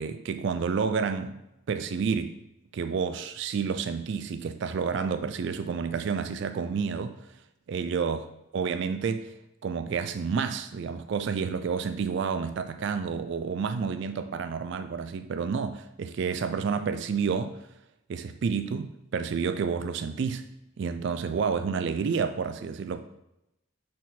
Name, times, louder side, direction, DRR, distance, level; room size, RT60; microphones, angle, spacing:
voice 1, 0.0-1.4 1.7-2.4 2.7-7.2 7.7-8.2 8.5-9.3 9.6-17.6 18.1-20.4 20.8-23.0, right 5 dB, 55° right, 10 dB, 0.3 m, -29 dB
6.3 x 4.0 x 4.1 m, 0.87 s
head